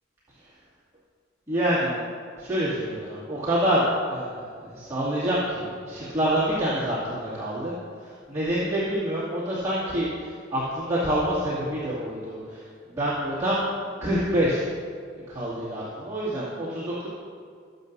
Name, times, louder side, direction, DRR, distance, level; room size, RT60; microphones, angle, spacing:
voice 1, 1.5-2.0 2.4-7.7 8.0-12.6 12.9-13.6 14.0-14.6 15.3-17.1, right 1 dB, 15° right, -11 dB, 2.4 m, -27 dB
19.5 x 7.8 x 2.7 m, 2.1 s
head